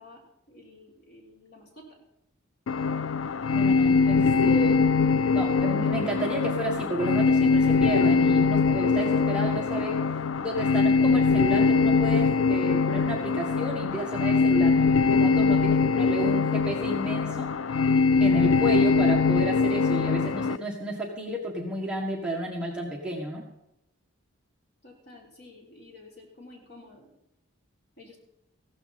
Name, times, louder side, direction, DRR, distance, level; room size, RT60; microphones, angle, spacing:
voice 1, 0.0-2.0 15.5-15.8 24.8-27.1 28.0-28.2, left 2 dB, 50° left, -1 dB, 3.7 m, -51 dB
sound 1, 2.7-20.6, left 4 dB, 70° left, 0.4 m, -22 dB
voice 2, 3.5-10.0 10.4-17.5 18.2-23.4, right 1 dB, 5° right, -2 dB, 1.6 m, -32 dB
15.5 x 13.0 x 4.2 m, 0.83 s
head